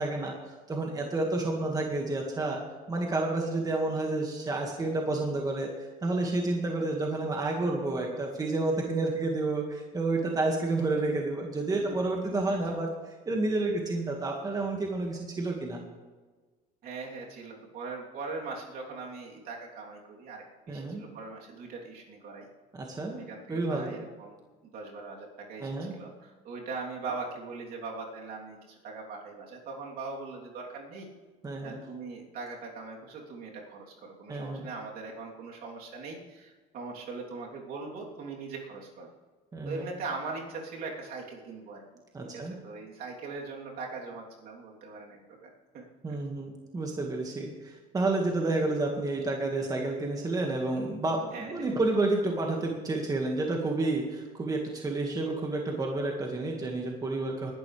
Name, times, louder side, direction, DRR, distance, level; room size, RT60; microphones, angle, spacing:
voice 1, 0.0-2.6 2.9-15.8 20.7-21.0 22.7-23.2 23.5-24.0 25.6-26.0 31.4-31.8 34.3-34.7 39.5-39.9 42.1-42.5 46.0-57.5, right 2 dB, 20° right, 1 dB, 1.8 m, -30 dB
voice 2, 11.7-12.1 12.4-12.6 16.8-22.5 23.2-31.1 31.6-39.1 39.6-41.8 42.3-45.5 45.7-46.2 51.3-51.8, right 4 dB, 60° right, -2 dB, 3.3 m, -41 dB
20.5 x 11.5 x 3.4 m, 1.4 s
cardioid pair, 130°, 17 cm